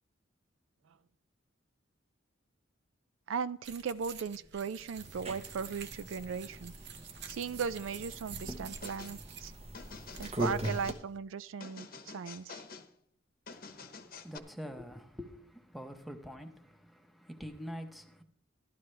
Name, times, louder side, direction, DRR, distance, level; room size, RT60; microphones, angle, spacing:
voice 1, 3.3-6.7 7.3-9.5 10.2-12.6, right 6 dB, 75° right, 0.4 m, -37 dB
sound 1, 3.6-11.2, right 8 dB, 60° right, 0.9 m, -50 dB
sound 2, 5.0-10.9, right 1 dB, 30° right, 1.0 m, -41 dB
sound 3, 8.8-9.2 9.7-11.0 11.6-12.9 13.5-14.4, left 5 dB, 50° left, 0.9 m, -48 dB
voice 2, 13.5-18.2, equal, ahead, 0.9 m, -46 dB
13.5 x 11.0 x 3.2 m
head